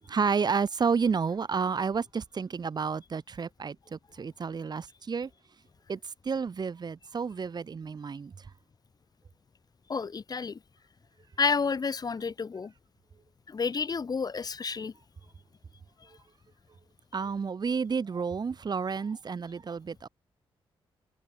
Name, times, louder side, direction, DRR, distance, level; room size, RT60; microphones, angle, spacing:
voice 1, 0.1-5.3 5.9-8.5 17.1-20.1, right 5 dB, 45° right, 7.7 m, -31 dB
voice 2, 9.9-10.6 11.4-12.7 13.5-14.9, left 5 dB, 45° left, 5.1 m, -30 dB
open air
cardioid pair, 100°, 10 cm